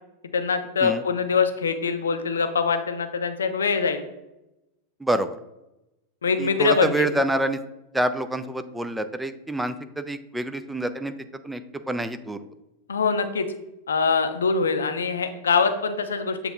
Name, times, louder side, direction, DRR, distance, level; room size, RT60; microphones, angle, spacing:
voice 1, 0.3-4.1 6.2-7.1 12.9-13.5 13.9-16.5, left 5 dB, 70° left, 9 dB, 0.5 m, -23 dB
voice 2, 5.0-5.4 6.4-7.6 7.9-11.1 11.4-11.6 11.9-12.4, right 1 dB, 5° right, 9 dB, 0.3 m, -27 dB
7.6 x 2.9 x 2.4 m, 0.94 s
figure-of-eight pair, 90°, 0 cm